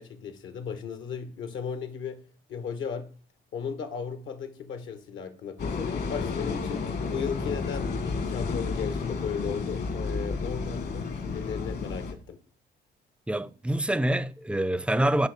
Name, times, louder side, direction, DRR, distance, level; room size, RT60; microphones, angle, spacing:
voice 1, 0.0-2.2 2.5-3.1 3.5-8.0 8.2-12.4, left 6 dB, 75° left, 1.4 m, -35 dB
sound 1, 5.6-12.1, left 4 dB, 55° left, 1.5 m, -31 dB
voice 2, 13.3-15.3, right 1 dB, 5° right, 0.4 m, -26 dB
9.3 x 3.7 x 6.5 m
cardioid pair, 90°, 20 cm